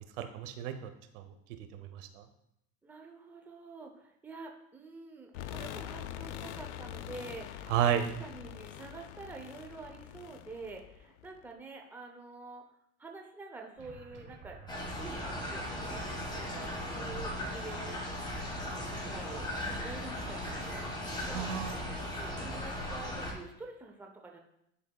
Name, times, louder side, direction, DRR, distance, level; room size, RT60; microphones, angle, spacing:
voice 1, 0.2-0.9 1.1-1.3 1.7-2.2 7.7-8.1 21.3-21.7, right 9 dB, 75° right, 8 dB, 0.9 m, -31 dB
voice 2, 2.8-12.6 13.0-14.6 15.0-16.0 16.3-18.0 18.9-19.4 19.8-20.9 21.2-21.5 22.2-24.4, right 3 dB, 5° right, 2 dB, 0.6 m, -47 dB
sound 1, 5.3-11.4, left 11 dB, 65° left, 0.6 m, -44 dB
sound 2, 13.8-23.4, right 3 dB, 30° right, 1.5 m, -49 dB
sound 3, 14.7-23.3, left 1 dB, 10° left, 1.5 m, -38 dB
10.5 x 4.1 x 2.3 m, 0.79 s
supercardioid pair, 130°, 37 cm